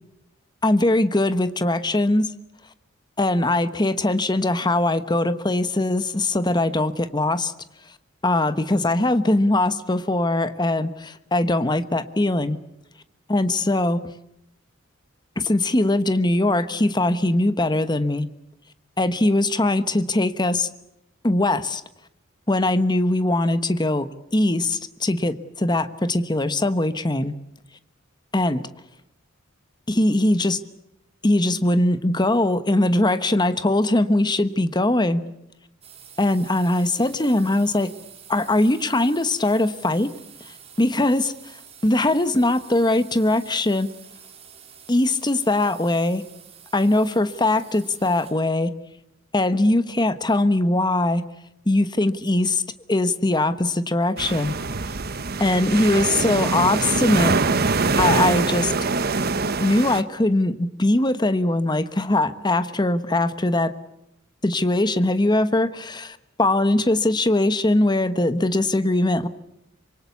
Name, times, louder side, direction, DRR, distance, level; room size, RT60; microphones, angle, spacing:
voice 1, 0.6-2.3 3.2-7.5 8.2-12.6 13.3-14.0 15.4-18.3 19.0-20.7 21.2-21.8 22.5-27.3 28.3-28.6 29.9-30.6 31.2-35.2 36.2-37.9 38.3-40.1 40.8-41.3 41.8-43.9 44.9-46.2 46.7-48.7 49.3-51.2 51.7-52.6 52.9-54.6 55.4-57.4 58.0-58.7 59.6-63.7 64.4-69.3, left 2 dB, 20° left, 12 dB, 1.1 m, -21 dB
sound 1, 35.8-48.5, right 7 dB, 30° right, 4.4 m, -47 dB
sound 2, 54.2-60.0, right 4 dB, 50° right, 1.1 m, -23 dB
25.5 x 23.5 x 8.3 m, 0.83 s
head